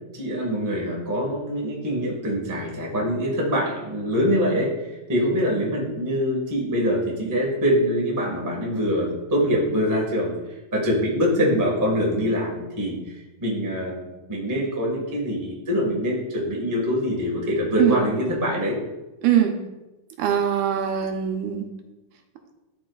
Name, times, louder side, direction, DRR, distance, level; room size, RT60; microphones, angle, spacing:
voice 1, 0.1-10.3 10.7-18.8, equal, 15° right, -3 dB, 0.5 m, -24 dB
voice 2, 19.2-19.6 20.2-21.7, right 9 dB, 80° right, 4 dB, 2.1 m, -22 dB
12.5 x 4.6 x 2.4 m, 1.0 s
omnidirectional pair, 3.6 m